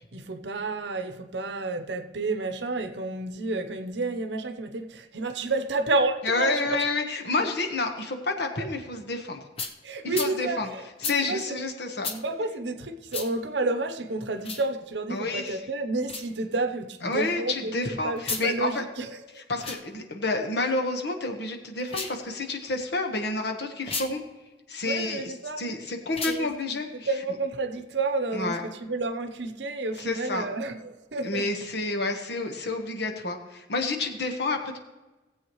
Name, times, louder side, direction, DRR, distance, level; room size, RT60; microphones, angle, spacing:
voice 1, 0.1-6.9 8.6-8.7 9.8-11.6 12.0-19.4 24.9-25.7 26.3-31.5, right 3 dB, 70° right, 0.8 m, -30 dB
voice 2, 6.2-9.4 10.0-10.7 11.0-12.1 15.1-15.6 17.0-18.8 19.5-24.2 24.7-27.1 28.3-28.6 30.0-30.4 31.2-34.8, left 3 dB, 65° left, 1.3 m, -29 dB
sound 1, 9.6-9.7 10.1-10.3 11.0-11.2 12.0-12.2 13.1-13.3 14.4-14.6 16.0-16.3 18.2-18.5 19.5-19.8 21.8-22.2 23.8-24.1 26.1-26.4, left 4 dB, 35° left, 0.9 m, -33 dB
18.0 x 8.0 x 3.1 m
head